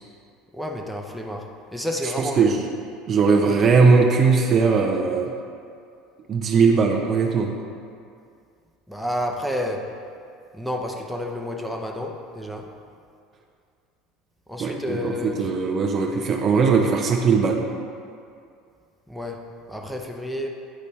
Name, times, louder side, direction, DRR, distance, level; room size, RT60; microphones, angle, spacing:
voice 1, 0.5-2.5 8.9-9.9 10.5-12.7 14.5-15.4 19.1-19.4 19.7-20.5, left 1 dB, ahead, 1 dB, 0.8 m, -30 dB
voice 2, 2.0-2.7 3.1-5.3 6.3-7.5 14.6-17.6, right 5 dB, 35° right, 2 dB, 0.7 m, -19 dB
10.0 x 5.2 x 3.2 m, 2.3 s
figure-of-eight pair, 70°, 0 cm